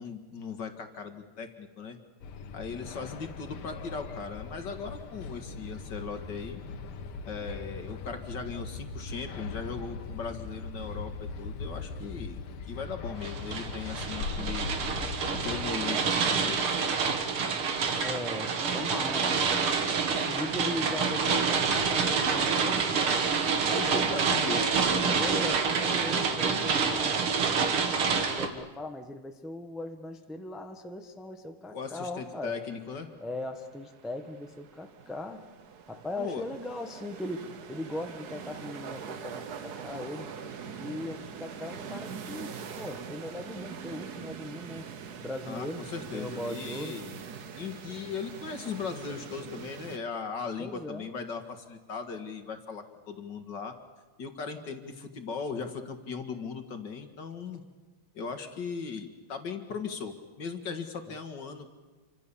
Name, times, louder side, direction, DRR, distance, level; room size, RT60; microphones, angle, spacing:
voice 1, 0.0-2.0 2.5-6.6 7.3-14.7 15.3-17.0 23.7-24.6 31.7-33.1 36.2-36.4 45.5-47.2 47.5-53.7 54.2-57.6 58.1-61.8, left 5 dB, 55° left, 7 dB, 2.4 m, -38 dB
sound 1, 2.2-15.7, left 4 dB, 85° left, 2.1 m, -39 dB
sound 2, 13.2-28.5, right 5 dB, 80° right, 2.6 m, -27 dB
voice 2, 18.0-19.5 20.1-22.9 25.0-27.2 28.1-32.6 33.2-35.5 35.9-40.3 40.8-44.9 45.2-47.0 50.6-51.1 61.1-61.2, left 1 dB, ahead, 5 dB, 1.2 m, -39 dB
sound 3, 31.9-50.0, right 7 dB, 55° right, 1.5 m, -43 dB
28.0 x 25.0 x 7.1 m, 1.2 s
omnidirectional pair, 2.3 m